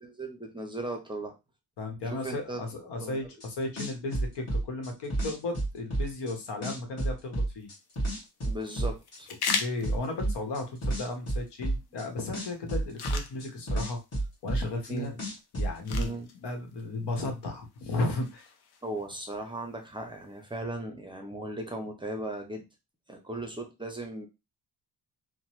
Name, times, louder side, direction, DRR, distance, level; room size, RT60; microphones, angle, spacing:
voice 1, 0.0-1.4 2.1-2.6 3.0-3.2 8.4-9.3 14.9-15.2 15.9-16.3 18.8-22.6 23.1-24.3, right 1 dB, 10° right, 3 dB, 0.5 m, -37 dB
voice 2, 1.8-7.7 9.6-14.0 14.4-15.2 15.5-18.4, left 2 dB, 85° left, 4 dB, 1.0 m, -35 dB
sound 1, 3.4-3.5 3.8-6.3 6.6-9.2 9.5-12.0 12.3-14.9 15.2-16.1, right 2 dB, 40° left, 1.4 m, -30 dB
sound 2, 7.6-20.6, left 6 dB, 70° left, 0.6 m, -41 dB
2.9 x 2.1 x 3.0 m, 0.24 s
wide cardioid pair, 135°, 40 cm